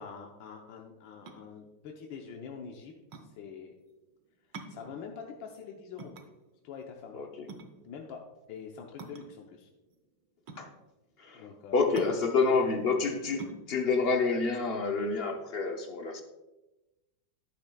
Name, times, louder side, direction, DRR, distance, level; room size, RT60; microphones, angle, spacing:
voice 1, 0.0-2.9 3.3-3.7 4.7-6.1 6.6-7.2 7.8-8.2 8.5-9.7 11.3-12.1 12.3-12.8, left 6 dB, 85° left, 2 dB, 1.5 m, -45 dB
sound 1, 1.1-15.5, right 3 dB, 75° right, 1.5 m, -49 dB
voice 2, 11.7-16.2, left 4 dB, 65° left, 3 dB, 0.6 m, -28 dB
10.5 x 8.5 x 2.3 m, 1.0 s
omnidirectional pair, 2.0 m